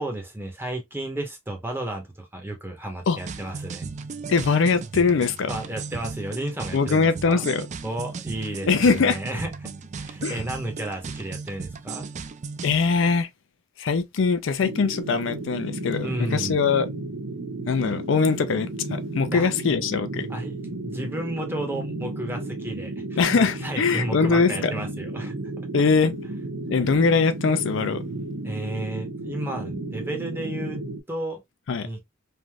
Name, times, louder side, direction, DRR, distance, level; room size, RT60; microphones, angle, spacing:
voice 1, 0.0-3.9 5.5-7.5 7.8-9.7 10.0-12.1 16.0-16.6 19.3-19.5 20.3-25.4 25.8-25.9 28.4-30.8 31.1-31.4 31.8-32.0, right 1 dB, 10° right, 0.8 m, -33 dB
sound 1, 3.2-12.7, right 4 dB, 35° right, 0.3 m, -36 dB
voice 2, 4.3-5.5 6.7-7.7 8.7-9.2 10.2-10.4 12.6-13.3 13.8-16.9 17.7-20.3 23.2-24.7 25.7-26.1 26.7-28.0 31.7-31.9, left 5 dB, 65° left, 0.4 m, -22 dB
sound 2, 14.6-31.0, right 2 dB, 75° right, 0.7 m, -33 dB
3.2 x 2.5 x 2.2 m
head